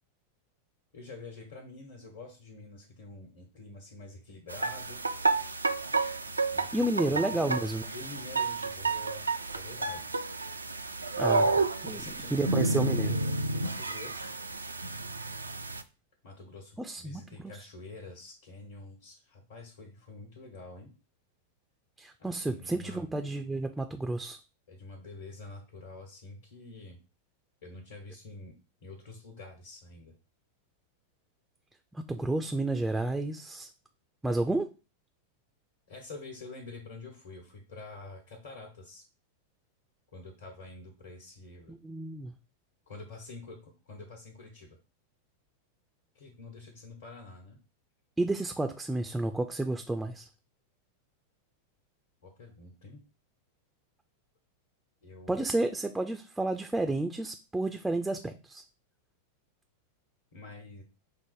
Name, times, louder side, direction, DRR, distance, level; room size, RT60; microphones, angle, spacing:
voice 1, 0.9-5.0 6.5-10.1 11.8-14.3 16.2-20.9 22.2-23.1 24.7-27.0 27.6-28.5 28.8-30.1 35.9-39.0 40.1-41.8 42.9-44.8 46.1-47.6 52.2-53.0 55.0-55.6 60.3-60.8, left 3 dB, 60° left, 1 dB, 1.2 m, -47 dB
sound 1, 4.5-15.8, right 3 dB, 80° right, 0.3 m, -30 dB
voice 2, 6.7-7.9 11.2-12.0 12.3-13.2 16.8-17.5 22.0-24.4 31.9-33.7 34.2-34.7 41.7-42.3 48.2-50.3 55.3-58.6, right 2 dB, 5° right, 6 dB, 0.4 m, -31 dB
5.4 x 2.0 x 4.7 m, 0.32 s
figure-of-eight pair, 90°, 0 cm